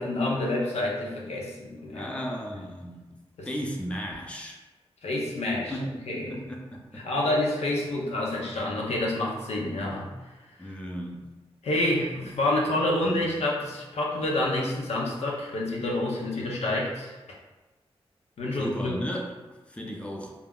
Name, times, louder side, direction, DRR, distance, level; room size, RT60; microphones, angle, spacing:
voice 1, 0.0-2.1 3.4-3.5 5.0-5.7 6.1-6.4 6.9-10.1 10.6-10.7 11.6-17.1 18.4-19.0, left 1 dB, 85° left, -3 dB, 0.5 m, -28 dB
voice 2, 1.9-3.1 3.5-4.6 5.7-7.1 10.6-11.3 18.5-19.3 19.7-20.3, equal, 10° left, -1 dB, 0.5 m, -35 dB
2.2 x 2.0 x 3.5 m, 1.2 s
cardioid pair, 55°, 11 cm